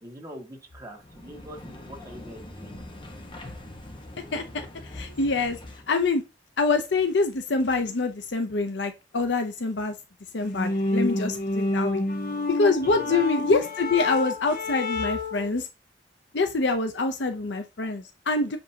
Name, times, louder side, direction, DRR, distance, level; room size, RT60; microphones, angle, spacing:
voice 1, 0.0-2.8 12.8-13.5, right 1 dB, 20° right, 0 dB, 2.0 m, -43 dB
sound 1, 0.9-6.0, left 1 dB, 30° left, 1.3 m, -43 dB
voice 2, 4.3-4.7 4.9-5.6 5.9-6.2 6.6-9.9 10.3-12.0 12.5-15.7 16.3-18.6, left 3 dB, 75° left, 7 dB, 0.7 m, -25 dB
sound 2, 10.4-15.5, left 2 dB, 55° left, 1.3 m, -28 dB
6.6 x 5.3 x 2.8 m, 0.27 s
head